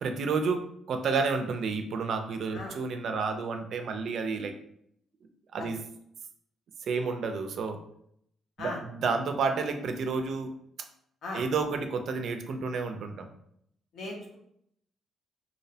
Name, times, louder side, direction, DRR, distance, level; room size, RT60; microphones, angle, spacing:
voice 1, 0.0-4.5 5.5-5.8 6.9-7.8 8.6-10.5 11.3-13.3, right 4 dB, 65° right, 6 dB, 0.3 m, -30 dB
voice 2, 13.9-14.4, left 2 dB, 75° left, -1 dB, 0.7 m, -37 dB
2.6 x 2.0 x 2.6 m, 0.71 s
cardioid pair, 90°, 0 cm